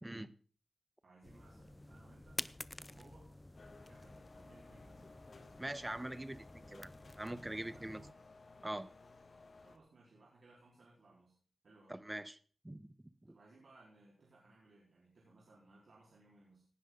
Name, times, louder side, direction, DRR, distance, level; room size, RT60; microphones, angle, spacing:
voice 1, 1.0-2.4 2.9-3.3 3.7-5.1 6.6-6.9 7.3-8.2 9.6-11.4 11.6-12.0 13.3-16.7, right 2 dB, 75° right, -4 dB, 4.3 m, -63 dB
sound 1, 1.2-8.1, left 1 dB, 20° left, 0.6 m, -50 dB
sound 2, 3.5-9.8, left 3 dB, 60° left, 2.0 m, -59 dB
voice 2, 5.6-6.9 7.2-8.0 8.6-8.9 11.9-12.4 12.6-12.9 13.2-13.3, right 1 dB, 20° right, 14 dB, 1.0 m, -43 dB
18.0 x 11.0 x 3.9 m, 0.41 s
cardioid pair, 55°, 0 cm